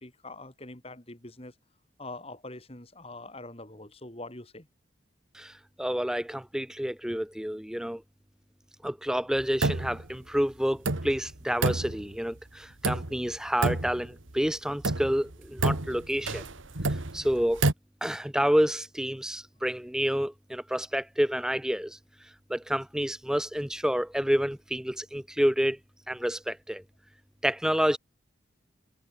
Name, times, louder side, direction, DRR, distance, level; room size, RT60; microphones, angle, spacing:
voice 1, 0.0-1.5 2.0-4.7 19.6-19.7, left 2 dB, 30° left, 2.5 m, -44 dB
voice 2, 5.8-8.0 8.8-16.4 17.1-17.6 18.0-22.0 22.5-25.8 26.1-26.8 27.4-28.0, equal, 5° right, 0.5 m, -29 dB
sound 1, 9.4-10.1 10.4-10.5 10.8-12.3 12.8-13.4 13.6-14.4 14.8-17.7, right 2 dB, 75° right, 1.9 m, -29 dB
head